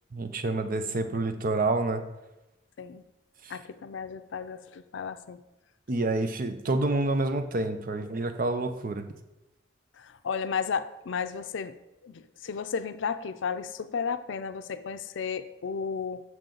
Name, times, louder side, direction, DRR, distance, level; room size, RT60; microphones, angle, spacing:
voice 1, 0.1-2.0 3.4-3.6 5.9-9.0, right 2 dB, 50° right, 8 dB, 0.6 m, -28 dB
voice 2, 3.5-5.4 10.0-11.7 12.0-16.2, left 6 dB, 80° left, 11 dB, 0.5 m, -33 dB
7.4 x 6.0 x 3.8 m, 1.0 s
head